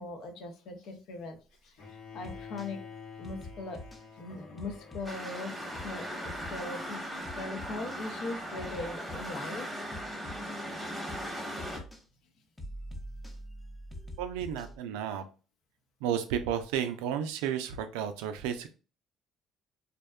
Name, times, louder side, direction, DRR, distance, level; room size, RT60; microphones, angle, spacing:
voice 1, 0.0-2.8 3.2-3.8 4.2-7.0 7.3-9.7, left 3 dB, 65° left, 5 dB, 0.6 m, -40 dB
Bowed string instrument, 1.8-7.8, left 5 dB, 85° left, 1.1 m, -49 dB
sound 1, 2.2-2.7 3.2-4.0 4.6-5.4 5.7-6.0 6.2-6.7 7.2-8.0 8.6-9.4 9.9-10.7 11.1-11.3 11.6-12.0 12.6-14.8, left 1 dB, 15° left, 0.6 m, -45 dB
sound 2, 5.0-11.8, equal, 5° right, 0.9 m, -38 dB
voice 2, 14.2-15.2 16.0-18.7, right 9 dB, 85° right, 9 dB, 0.3 m, -32 dB
2.6 x 2.2 x 2.2 m, 0.34 s
supercardioid pair, 75°, 0 cm